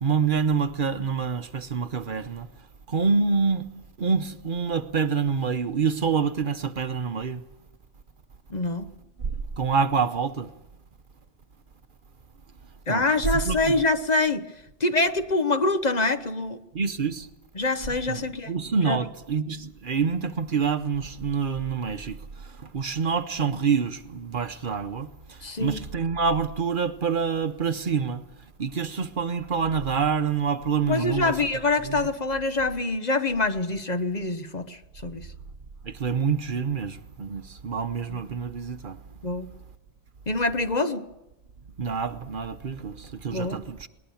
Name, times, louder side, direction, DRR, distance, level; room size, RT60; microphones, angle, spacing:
voice 1, 0.0-2.5 2.9-3.7 4.0-7.4 9.6-10.5 12.9-13.0 13.3-13.8 16.7-17.3 18.1-22.2 22.6-28.2 28.6-31.4 31.8-32.1 35.8-39.0 41.8-43.9, right 5 dB, 55° right, 1.0 m, -27 dB
voice 2, 8.5-8.9 12.9-14.5 14.8-16.6 17.6-18.5 18.8-19.1 25.4-25.8 30.9-35.3 39.2-39.5 40.3-41.0 43.3-43.6, left 2 dB, 45° left, 1.1 m, -25 dB
21.0 x 20.0 x 7.1 m
omnidirectional pair, 1.1 m